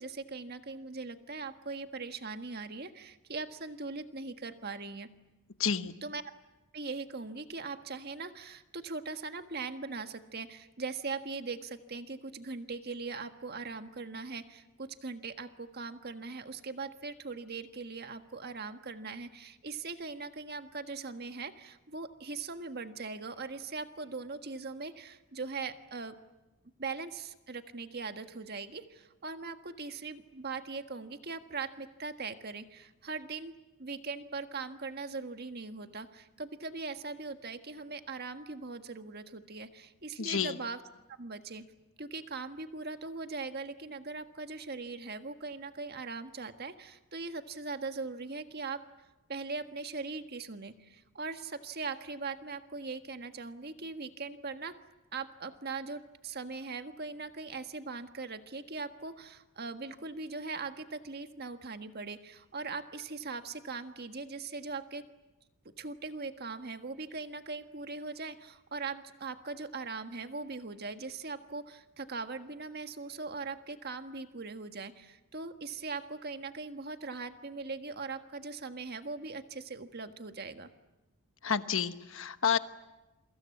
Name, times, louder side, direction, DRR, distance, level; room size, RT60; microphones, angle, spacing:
voice 1, 0.0-5.1 6.0-6.2 6.7-26.2 26.8-33.5 33.8-40.8 41.1-41.6 42.0-48.8 49.3-54.7 55.1-65.1 65.8-80.7, right 4 dB, 45° right, 8 dB, 1.6 m, -40 dB
voice 2, 5.6-5.9 40.2-40.5 81.4-82.6, left 7 dB, 65° left, 11 dB, 1.2 m, -29 dB
28.5 x 24.0 x 8.5 m, 1.0 s
head